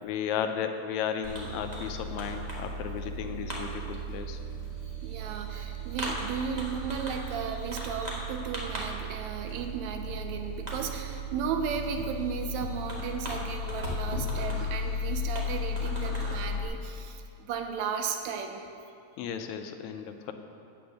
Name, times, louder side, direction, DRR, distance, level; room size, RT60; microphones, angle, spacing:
voice 1, 0.0-4.4 19.2-20.3, left 8 dB, 80° left, 7 dB, 1.9 m, -34 dB
Fireworks, 1.2-16.7, left 1 dB, 45° right, 0.5 m, -35 dB
voice 2, 5.0-18.7, right 6 dB, 80° right, 5 dB, 1.9 m, -35 dB
8.8 x 7.6 x 6.5 m, 2.5 s
omnidirectional pair, 3.4 m